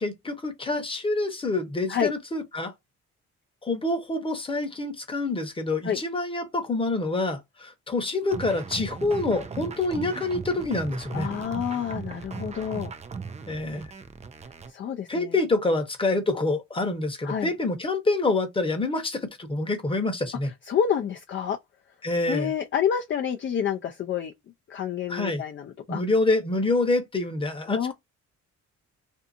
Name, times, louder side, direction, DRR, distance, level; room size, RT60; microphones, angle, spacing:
voice 1, 0.0-2.7 3.6-11.3 13.5-13.9 15.1-20.5 22.0-22.5 25.1-25.4 25.9-27.9, left 2 dB, 15° left, 0.9 m, -27 dB
sound 1, 8.3-14.7, right 5 dB, 25° right, 0.4 m, -37 dB
voice 2, 11.1-12.9 14.7-15.3 17.2-17.5 20.7-21.6 22.3-24.3 24.7-26.0 27.7-27.9, left 8 dB, 40° left, 0.4 m, -28 dB
2.6 x 2.4 x 2.5 m
cardioid pair, 90°, 30 cm